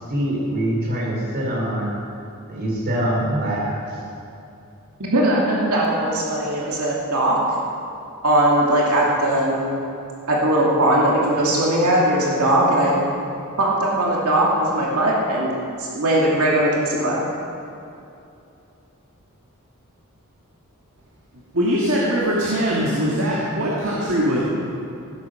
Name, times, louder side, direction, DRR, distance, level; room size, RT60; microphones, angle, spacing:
voice 1, 0.1-1.9 2.5-3.8, right 1 dB, 45° right, -3 dB, 3.8 m, -24 dB
voice 2, 5.0-7.4 8.2-9.7 10.3-12.9 13.6-15.5 15.8-17.3, right 1 dB, 90° right, -4 dB, 2.5 m, -19 dB
voice 3, 21.5-24.4, equal, 60° right, -6 dB, 2.1 m, -21 dB
15.5 x 8.6 x 6.4 m, 2.7 s
head